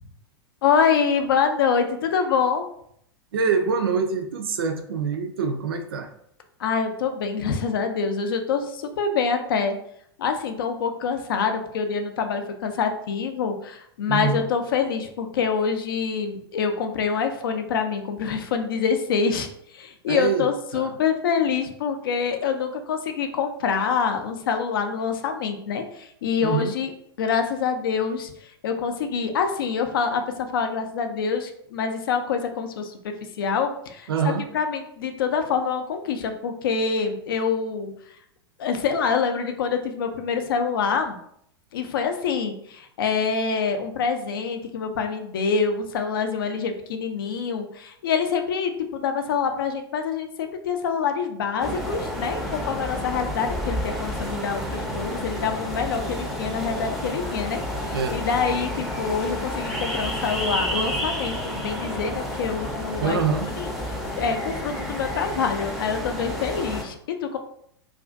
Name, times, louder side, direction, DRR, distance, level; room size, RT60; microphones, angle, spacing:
voice 1, 0.6-2.6 6.6-9.8 10.2-26.9 27.2-33.0 33.4-37.9 38.6-41.2 41.7-63.2 63.6-63.7 64.2-67.4, left 6 dB, 60° left, 6 dB, 0.4 m, -26 dB
voice 2, 3.3-6.1 14.1-14.4 20.1-20.5 20.7-20.9 26.4-26.7 34.1-34.5 57.9-58.2 63.0-63.5, right 5 dB, 65° right, 6 dB, 0.4 m, -25 dB
sound 1, 51.6-66.8, equal, ahead, 0.5 m, -30 dB
2.4 x 2.3 x 2.4 m, 0.70 s
figure-of-eight pair, 90°, 13 cm